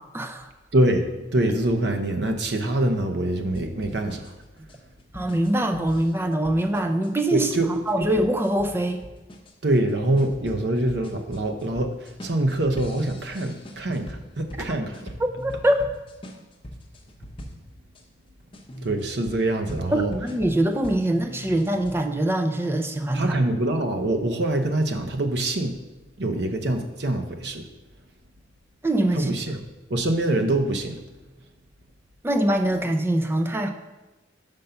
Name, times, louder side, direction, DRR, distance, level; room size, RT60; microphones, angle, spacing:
voice 1, 0.1-0.5 5.1-9.0 15.2-15.8 19.9-23.4 28.8-29.4 32.2-33.7, right 1 dB, 15° right, 6 dB, 0.4 m, -23 dB
voice 2, 0.7-4.2 7.3-7.7 8.0-8.1 9.6-15.1 18.8-20.1 23.1-25.7 26.2-27.6 29.1-29.6 29.9-31.0, right 1 dB, 65° right, 5 dB, 0.8 m, -24 dB
sound 1, 3.5-18.0 18.5-22.0, equal, 30° left, 0.8 m, -42 dB
5.3 x 5.3 x 5.7 m, 1.1 s
head